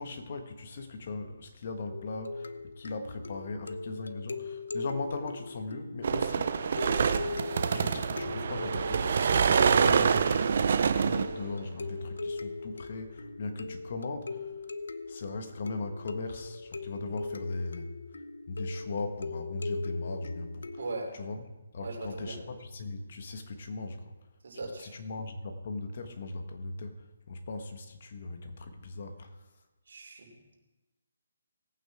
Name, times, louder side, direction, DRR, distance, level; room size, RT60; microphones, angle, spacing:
voice 1, 0.0-6.8 7.7-10.5 10.9-14.5 15.1-17.9 18.5-20.8 21.1-24.1 24.8-29.3, left 3 dB, 45° left, 6 dB, 1.5 m, -38 dB
sound 1, 1.9-21.1, left 3 dB, 80° left, 0.7 m, -40 dB
sound 2, 6.0-11.5, right 6 dB, 50° right, 0.7 m, -26 dB
voice 2, 20.8-21.1 21.8-22.4 24.4-25.0 29.9-30.3, right 3 dB, 70° right, 1 dB, 3.4 m, -38 dB
18.5 x 8.9 x 3.6 m, 1.1 s
hypercardioid pair, 160°, 0 cm